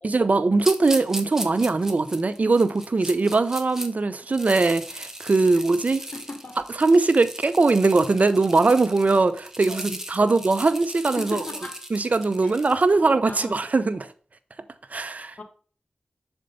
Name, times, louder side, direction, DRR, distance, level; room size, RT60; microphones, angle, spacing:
voice 1, 0.0-6.0 6.8-11.4 11.9-14.1 14.9-15.3, right 3 dB, 60° right, 0.7 m, -21 dB
sound 1, 0.6-3.9 4.2-12.9, right 1 dB, 15° right, 1.2 m, -37 dB
voice 2, 6.1-6.6 9.7-9.8 10.2-10.3 11.2-11.8 12.4-12.5 13.2-13.5 15.4-15.5, left 3 dB, 55° left, 1.6 m, -37 dB
6.6 x 4.5 x 5.1 m
cardioid pair, 40°, 3 cm